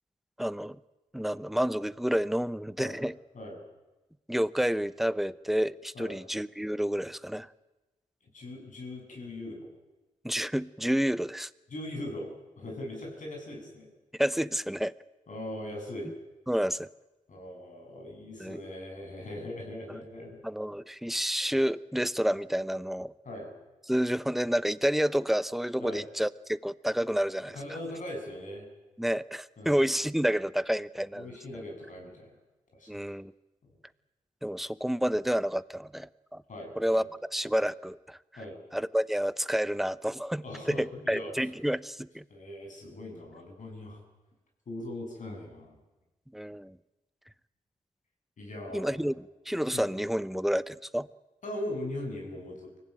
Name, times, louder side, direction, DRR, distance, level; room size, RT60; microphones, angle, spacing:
voice 1, 0.4-0.8 1.1-3.1 4.3-7.5 10.2-11.5 14.2-14.9 16.5-16.9 18.4-18.6 19.9-20.0 20.4-23.1 23.9-27.6 29.0-31.3 32.9-33.3 34.4-36.4 36.8-37.0 37.3-38.2 38.7-42.2 46.3-46.8 48.7-51.1, equal, ahead, 16 dB, 0.9 m, -29 dB
voice 2, 8.3-9.7 11.7-13.9 15.3-16.1 17.3-20.4 23.2-23.5 25.8-26.0 27.5-28.7 29.6-29.9 31.1-32.3 32.7-33.0 36.5-37.1 38.4-38.6 40.4-41.3 42.3-44.0 44.7-45.8 48.4-49.0 49.7-49.9 51.4-52.8, left 1 dB, 60° left, 1 dB, 8.0 m, -40 dB
24.0 x 16.0 x 9.2 m, 1.1 s
supercardioid pair, 45°, 14 cm